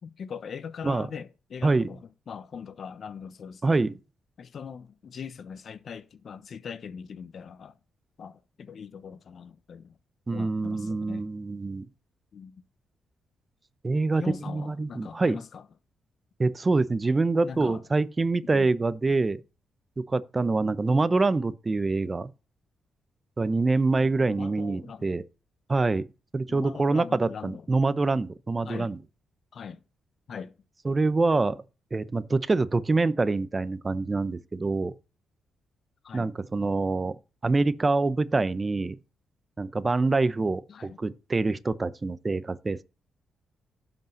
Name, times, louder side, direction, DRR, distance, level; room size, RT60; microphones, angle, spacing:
voice 1, 0.0-3.8 4.4-7.8 8.2-10.0 10.3-11.2 12.3-12.6 14.1-15.7 17.4-17.8 18.4-18.7 20.9-21.2 24.0-25.1 26.5-27.7 28.6-28.9 29.5-29.8 30.3-30.5 36.0-36.3 40.7-41.0, left 6 dB, 60° left, 0.9 m, -41 dB
voice 2, 3.6-4.0 10.3-11.9 13.8-15.4 16.4-19.4 20.0-22.3 23.4-25.2 25.7-26.0 26.3-29.0 30.8-31.6 31.9-34.9 36.1-37.1 37.4-39.0 39.6-42.8, right 3 dB, 30° right, 0.8 m, -25 dB
10.5 x 5.4 x 7.1 m
cardioid pair, 75°, 0 cm